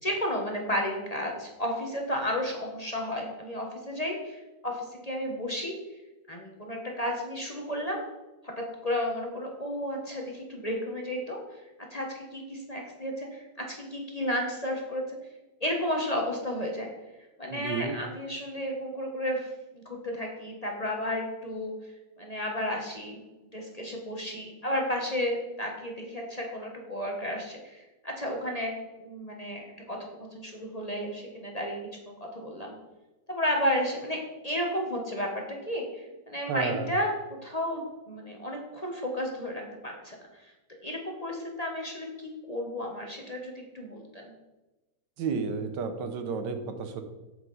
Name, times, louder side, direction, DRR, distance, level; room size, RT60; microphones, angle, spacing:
voice 1, 0.0-5.7 6.3-8.0 8.4-8.5 8.8-11.4 11.9-15.2 15.6-16.9 17.4-19.5 19.7-21.9 22.2-23.2 23.5-30.0 30.3-32.8 33.3-34.2 34.4-37.1 37.4-40.5 40.8-44.3, equal, 25° left, 0 dB, 1.1 m, -33 dB
voice 2, 17.5-17.9 36.5-36.9 45.2-47.0, right 5 dB, 80° right, 8 dB, 1.5 m, -31 dB
8.0 x 7.7 x 4.1 m, 1.1 s
omnidirectional pair, 1.9 m